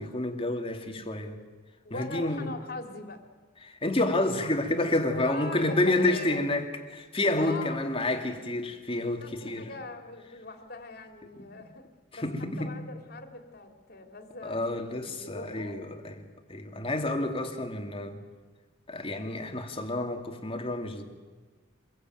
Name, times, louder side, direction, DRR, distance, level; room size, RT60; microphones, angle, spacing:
voice 1, 0.0-1.4 1.9-2.5 3.6-9.7 11.4-11.5 12.1-12.8 14.4-18.2 18.9-21.0, left 2 dB, 30° left, 2.6 m, -29 dB
voice 2, 1.8-3.2 5.1-6.5 7.3-7.8 8.0-8.4 9.2-11.8 12.1-12.3 12.6-15.8, left 2 dB, 50° left, 3.3 m, -41 dB
26.5 x 22.0 x 9.2 m
head